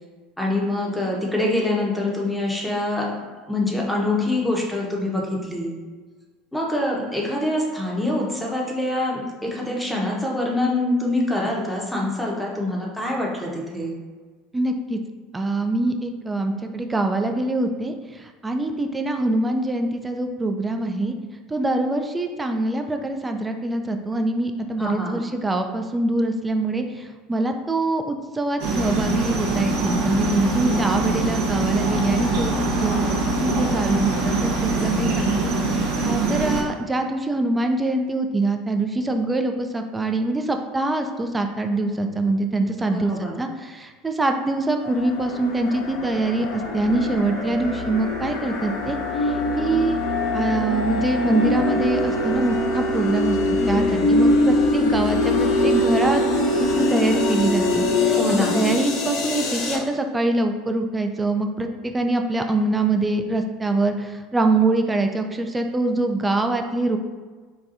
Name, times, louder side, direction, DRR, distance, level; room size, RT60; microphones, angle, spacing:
voice 1, 0.4-3.1 3.5-5.8 6.5-14.0 24.8-25.2 30.6-31.3 42.8-43.4 53.5-54.2 58.1-58.6, left 2 dB, 5° left, -2 dB, 0.7 m, -25 dB
voice 2, 14.5-15.0 15.3-17.9 18.4-21.1 21.5-26.8 27.3-32.5 32.8-33.0 33.4-35.5 35.8-49.0 49.2-50.0 50.3-56.2 56.8-58.2 58.5-67.0, right 2 dB, 15° right, 5 dB, 0.3 m, -24 dB
sound 1, 28.6-36.6, right 3 dB, 70° right, 0.6 m, -23 dB
sound 2, 44.8-59.8, left 1 dB, 65° left, 0.6 m, -23 dB
4.0 x 2.2 x 2.5 m, 1.4 s
supercardioid pair, 95°, 0 cm